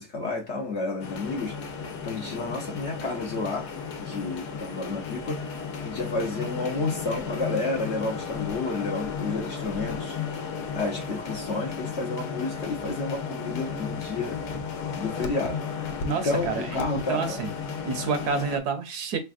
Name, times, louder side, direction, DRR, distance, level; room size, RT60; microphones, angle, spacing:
voice 1, 0.0-1.6 2.0-3.7 4.0-5.4 5.8-10.2 10.7-14.4 15.0-15.7 16.1-17.4, left 3 dB, 55° left, 0.8 m, -31 dB
sound 1, 1.0-18.6, left 5 dB, 80° left, 1.2 m, -34 dB
voice 2, 16.0-17.5 17.8-19.2, right 6 dB, 75° right, 1.2 m, -29 dB
4.6 x 3.4 x 2.4 m
omnidirectional pair, 1.7 m